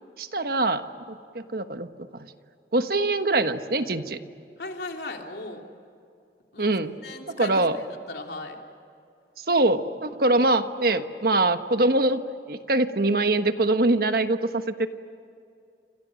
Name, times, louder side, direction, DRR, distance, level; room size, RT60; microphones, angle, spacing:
voice 1, 0.2-2.3 2.7-4.2 6.6-6.9 7.4-7.8 9.5-12.2 12.5-14.9, right 2 dB, 55° right, 8 dB, 1.3 m, -23 dB
voice 2, 4.6-5.6 6.5-6.7 7.0-8.6, left 2 dB, 70° left, 2 dB, 3.3 m, -37 dB
30.0 x 27.5 x 6.5 m, 2.5 s
head